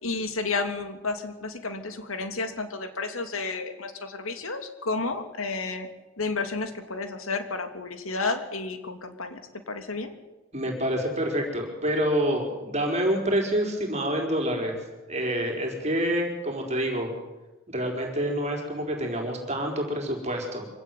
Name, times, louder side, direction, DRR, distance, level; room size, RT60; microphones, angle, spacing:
voice 1, 0.0-5.9 6.2-10.1, left 3 dB, 85° left, 8 dB, 2.8 m, -31 dB
voice 2, 10.5-14.8 15.1-17.1 17.7-20.7, equal, 30° right, 2 dB, 4.6 m, -27 dB
25.0 x 17.0 x 9.3 m, 1.1 s
head